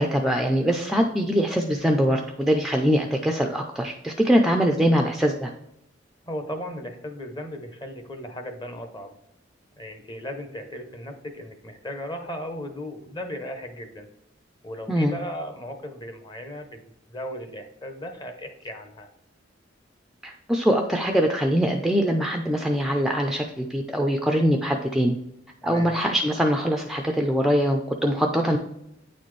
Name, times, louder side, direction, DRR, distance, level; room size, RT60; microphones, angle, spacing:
voice 1, 0.0-5.5 14.9-15.2 20.2-25.2 25.6-28.6, equal, ahead, 3 dB, 0.4 m, -23 dB
voice 2, 6.3-9.2 9.8-14.1 14.6-16.8 17.1-19.1 25.6-26.0, equal, 25° left, 6 dB, 0.9 m, -36 dB
9.1 x 4.2 x 3.2 m, 0.81 s
head